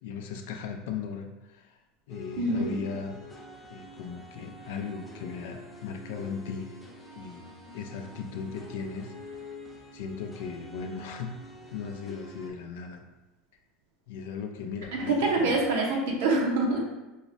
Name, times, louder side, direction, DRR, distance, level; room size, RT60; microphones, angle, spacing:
voice 1, 0.0-1.8 2.1-3.4 3.7-6.8 7.1-7.5 7.7-9.5 9.9-11.4 11.7-13.0 14.1-15.6, left 6 dB, 80° left, 4 dB, 0.3 m, -37 dB
sound 1, 2.1-12.5, left 1 dB, 10° left, 0.6 m, -46 dB
voice 2, 2.4-2.7 14.9-16.8, right 2 dB, 80° right, -1 dB, 0.8 m, -25 dB
4.5 x 2.0 x 2.6 m, 1.0 s
supercardioid pair, 120°, 0 cm